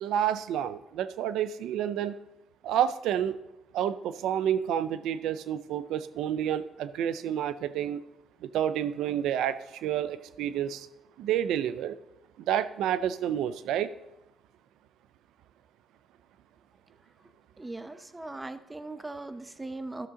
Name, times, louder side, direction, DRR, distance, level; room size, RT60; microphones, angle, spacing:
voice 1, 0.0-2.1 2.6-3.3 3.7-8.0 8.5-10.9 11.2-12.0 12.5-13.9, right 10 dB, 85° right, 14 dB, 0.4 m, -29 dB
voice 2, 17.6-20.1, right 2 dB, 15° right, 11 dB, 0.7 m, -39 dB
13.5 x 6.8 x 3.7 m, 0.92 s
cardioid pair, 90°, 0 cm